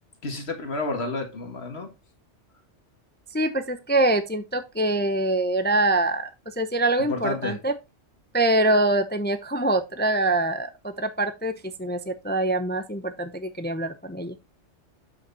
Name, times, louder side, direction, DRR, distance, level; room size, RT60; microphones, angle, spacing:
voice 1, 0.2-1.9 7.1-7.6, left 3 dB, 60° left, 2.0 m, -30 dB
voice 2, 3.3-7.7 8.3-14.3, right 2 dB, 15° left, 0.5 m, -24 dB
7.9 x 5.8 x 4.1 m
omnidirectional pair, 1.2 m